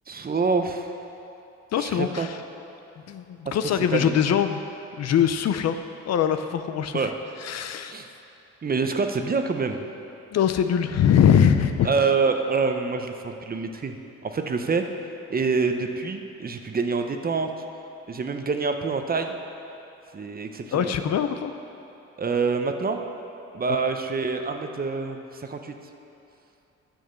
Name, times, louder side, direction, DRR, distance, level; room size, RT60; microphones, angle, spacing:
voice 1, 0.1-0.9 1.8-2.3 3.9-4.2 6.9-7.1 7.9-8.1 8.6-9.8 11.8-13.9 14.2-14.8 15.3-17.5 18.1-19.4 20.1-20.9 22.2-23.0 23.5-25.7, right 4 dB, 30° right, 6 dB, 0.8 m, -26 dB
voice 2, 1.7-2.4 3.1-4.6 5.0-5.8 6.0-7.1 7.4-8.0 10.3-11.9 20.7-21.5, left 8 dB, 60° left, 9 dB, 0.6 m, -22 dB
9.6 x 6.3 x 6.8 m, 2.8 s
cardioid pair, 90°, 30 cm